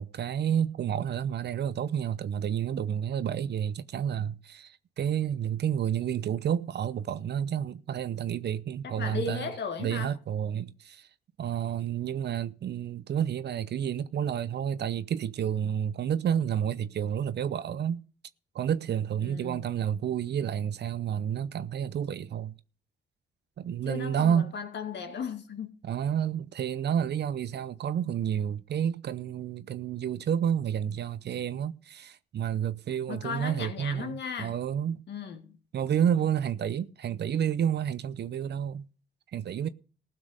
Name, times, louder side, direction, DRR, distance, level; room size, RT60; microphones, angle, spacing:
voice 1, 0.0-9.5 9.8-11.1 11.4-18.0 18.5-22.5 23.6-24.5 25.8-35.0 35.7-38.9 39.3-39.7, right 9 dB, 60° right, 0.7 m, -30 dB
voice 2, 8.8-10.1 19.2-19.6 23.9-25.7 33.1-34.5 35.1-35.6, left 6 dB, 65° left, 2.1 m, -36 dB
15.5 x 6.1 x 6.5 m
supercardioid pair, 55°, 20 cm